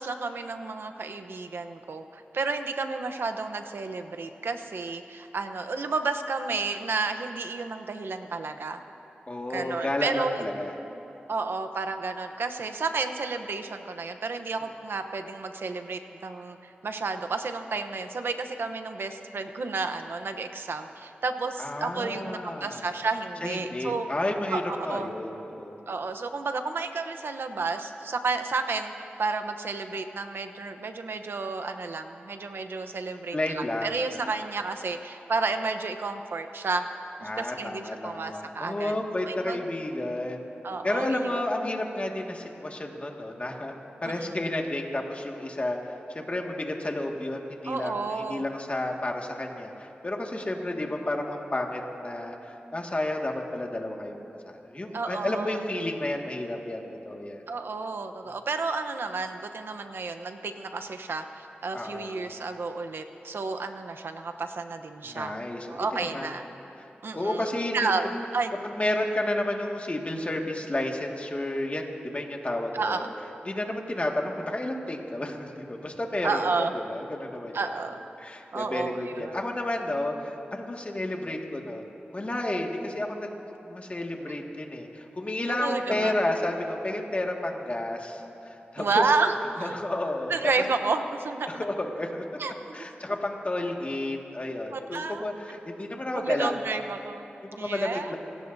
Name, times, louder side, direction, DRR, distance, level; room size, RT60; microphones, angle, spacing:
voice 1, 0.0-8.8 9.5-10.5 11.3-24.1 24.5-24.6 24.9-25.1 25.9-36.9 37.2-38.9 39.2-39.6 40.6-41.4 44.0-44.3 47.6-48.4 54.9-55.6 57.5-65.4 65.7-66.4 67.0-67.5 67.7-68.5 72.7-73.1 76.2-76.7 77.5-78.0 78.5-79.4 85.5-86.1 88.8-89.8 90.3-91.6 92.4-92.8 94.7-95.2 96.1-97.3 97.6-98.1, right 4 dB, 80° right, 7 dB, 0.9 m, -31 dB
voice 2, 9.3-10.7 21.6-22.9 23.4-25.8 33.3-34.1 37.2-40.4 40.8-43.7 44.0-54.2 54.6-57.4 61.7-62.1 65.0-66.3 66.8-66.9 67.1-67.9 68.6-73.0 73.5-77.8 78.2-83.3 83.6-89.1 89.6-90.4 91.5-92.2 92.7-96.6 97.4-98.2, left 1 dB, 35° left, 1 dB, 1.9 m, -31 dB
29.0 x 16.5 x 2.7 m, 3.0 s
wide cardioid pair, 60°, 4 cm